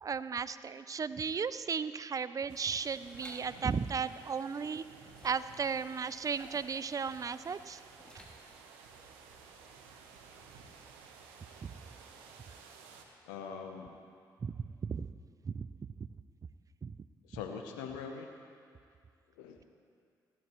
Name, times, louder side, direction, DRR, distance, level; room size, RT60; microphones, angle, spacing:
voice 1, 0.0-4.8 5.2-7.8 11.6-11.7 14.4-15.1 15.4-15.7 16.8-16.9, right 6 dB, 40° right, 15 dB, 0.5 m, -35 dB
sound 1, 2.5-13.1, right 5 dB, 85° right, 0.9 m, -55 dB
sound 2, 3.0-3.5 5.0-5.5 6.2-6.8 8.0-8.5, equal, 10° left, 3.0 m, -54 dB
voice 2, 13.3-13.9 17.2-18.3 19.4-19.6, left 6 dB, 90° left, 4 dB, 0.8 m, -42 dB
16.5 x 12.0 x 3.1 m, 2.2 s
hypercardioid pair, 45°, 9 cm